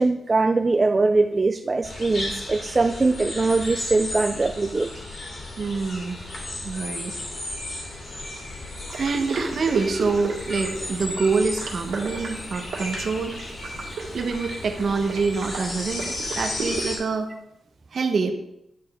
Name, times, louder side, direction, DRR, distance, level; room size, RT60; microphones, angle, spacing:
voice 1, 0.0-4.9, right 3 dB, 25° right, 7 dB, 0.3 m, -22 dB
sound 1, 1.8-17.0, left 2 dB, 45° left, 2.4 m, -34 dB
voice 2, 5.6-6.2 6.6-7.1 8.9-13.4 14.1-17.3 17.9-18.3, right 4 dB, 50° right, 6 dB, 0.9 m, -26 dB
sound 2, 8.9-16.8, right 4 dB, 75° right, 2.0 m, -35 dB
10.5 x 6.8 x 3.6 m, 0.83 s
wide cardioid pair, 170°, 0 cm